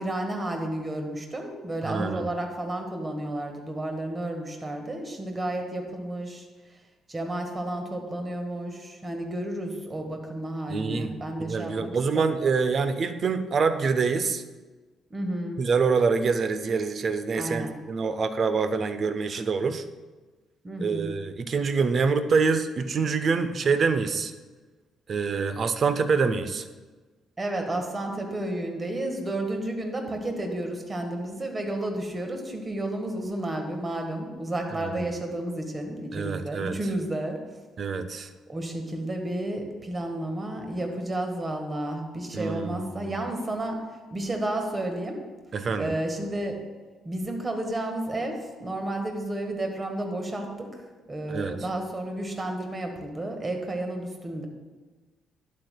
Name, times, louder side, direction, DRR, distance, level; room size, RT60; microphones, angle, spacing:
voice 1, 0.0-6.8 7.1-12.4 15.1-15.6 17.4-17.7 20.6-21.1 27.4-37.4 38.5-43.8 44.1-45.2 45.8-46.6 47.0-50.7 51.1-54.5, right 1 dB, 30° right, 4 dB, 1.5 m, -32 dB
voice 2, 1.8-2.3 10.7-11.1 11.4-14.4 15.6-19.9 20.8-24.3 25.1-26.6 34.8-35.0 36.1-36.8 37.8-38.3 42.3-43.2 45.5-45.9 51.3-51.6, right 5 dB, 45° right, 10 dB, 0.5 m, -26 dB
11.5 x 7.6 x 2.2 m, 1.3 s
figure-of-eight pair, 45°, 0 cm